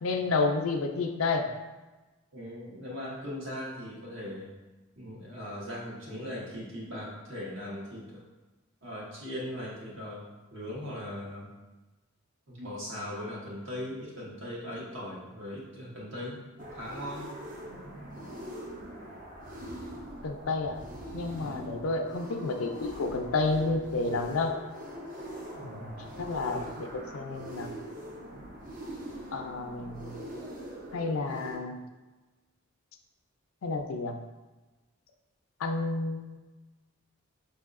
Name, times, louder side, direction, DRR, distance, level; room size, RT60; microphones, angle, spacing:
voice 1, 0.0-1.5 20.2-20.8 21.1-24.6 25.6-25.9 26.2-27.7 29.3-30.2 30.9-31.8 33.6-34.2 35.6-36.4, left 3 dB, 75° left, 4 dB, 0.4 m, -30 dB
voice 2, 2.3-4.5 5.0-8.2 8.8-10.2 10.5-11.5 12.5-17.2 21.3-21.7 25.5-26.0 26.4-26.7, left 1 dB, 65° right, -5 dB, 1.2 m, -39 dB
sound 1, 16.6-31.6, equal, 40° right, 0.5 m, -42 dB
5.2 x 2.7 x 2.5 m, 1.2 s
head